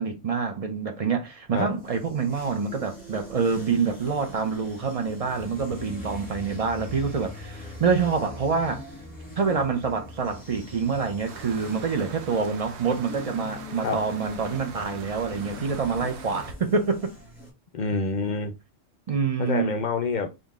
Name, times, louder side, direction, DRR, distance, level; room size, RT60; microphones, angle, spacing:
voice 1, 0.0-8.8 9.4-17.1 19.1-19.7, right 5 dB, 50° right, 0.4 m, -26 dB
sound 1, 1.6-17.5, left 1 dB, 5° left, 1.5 m, -44 dB
sound 2, 4.9-15.3 15.7-16.0, left 2 dB, 30° right, 1.1 m, -44 dB
sound 3, 11.3-16.5, right 6 dB, 65° right, 0.8 m, -42 dB
voice 2, 17.7-18.6 19.4-20.3, left 4 dB, 60° left, 0.5 m, -27 dB
3.7 x 2.6 x 3.5 m
omnidirectional pair, 1.3 m